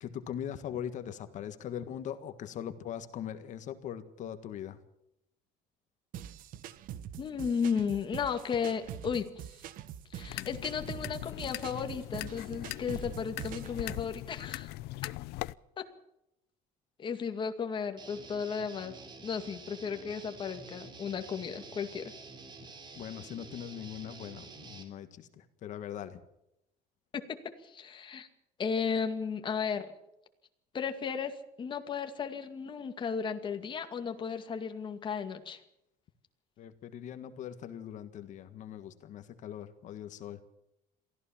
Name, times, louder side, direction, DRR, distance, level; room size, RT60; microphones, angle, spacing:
voice 1, 0.0-4.8 22.9-26.2 36.6-40.4, left 9 dB, 50° left, 10 dB, 1.6 m, -41 dB
sound 1, 6.1-14.1, right 10 dB, 60° right, 1.3 m, -44 dB
voice 2, 7.2-9.3 10.1-14.7 15.8-15.9 17.0-18.9 19.2-22.1 27.1-27.4 27.6-28.3 28.6-29.9 30.7-35.6, left 6 dB, 30° left, 6 dB, 2.2 m, -34 dB
sound 2, 10.3-15.5, left 19 dB, 80° left, 0.6 m, -40 dB
Guitar, 18.0-24.8, right 3 dB, 30° right, 3.3 m, -49 dB
23.5 x 15.5 x 7.3 m, 0.82 s
cardioid pair, 155°, 16 cm